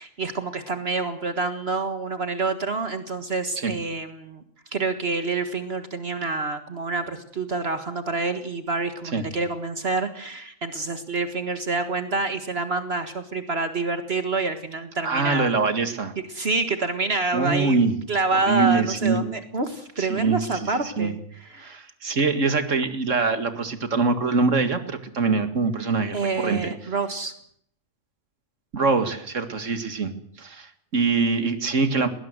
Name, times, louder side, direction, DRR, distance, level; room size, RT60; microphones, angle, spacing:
voice 1, 0.0-4.4 4.7-15.5 16.3-21.8 26.1-27.3, right 3 dB, 50° right, 8 dB, 1.8 m, -27 dB
voice 2, 15.0-16.1 17.3-18.0 18.3-19.2 20.0-21.1 21.6-26.7 28.7-30.1 30.4-32.1, right 4 dB, 70° right, 9 dB, 2.2 m, -24 dB
20.0 x 18.0 x 8.0 m, 0.67 s
omnidirectional pair, 1.3 m